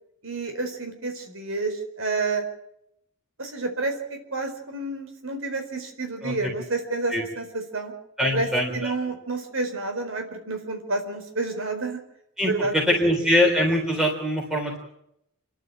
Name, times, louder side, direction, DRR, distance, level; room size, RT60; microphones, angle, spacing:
voice 1, 0.2-2.4 3.4-7.9 8.3-12.0 12.4-12.7, right 3 dB, 75° right, 5 dB, 4.4 m, -29 dB
voice 2, 8.2-8.9 12.4-14.8, equal, 5° right, 0 dB, 3.5 m, -23 dB
29.0 x 12.0 x 8.9 m, 0.78 s
head